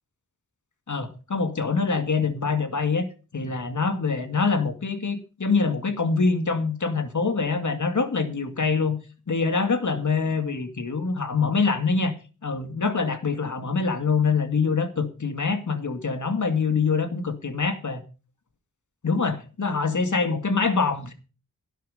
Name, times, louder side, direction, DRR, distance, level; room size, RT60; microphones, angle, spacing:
voice 1, 0.9-3.1 3.3-9.0 9.3-12.1 12.4-18.0 19.0-21.1, left 4 dB, 65° left, 8 dB, 2.1 m, -25 dB
11.5 x 9.1 x 5.6 m, 0.34 s
wide cardioid pair, 95°, 33 cm